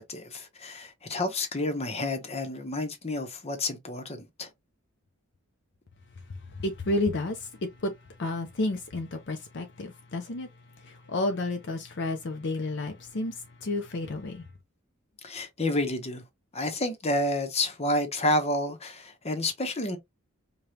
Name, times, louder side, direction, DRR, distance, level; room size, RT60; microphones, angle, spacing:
voice 1, 0.0-4.5 15.2-16.2 16.5-20.0, left 1 dB, 30° left, 0.9 m, -30 dB
voice 2, 6.6-7.5 7.8-7.9 8.2-10.5 10.8-14.5, left 2 dB, 55° left, 0.6 m, -31 dB
4.9 x 2.3 x 2.8 m
head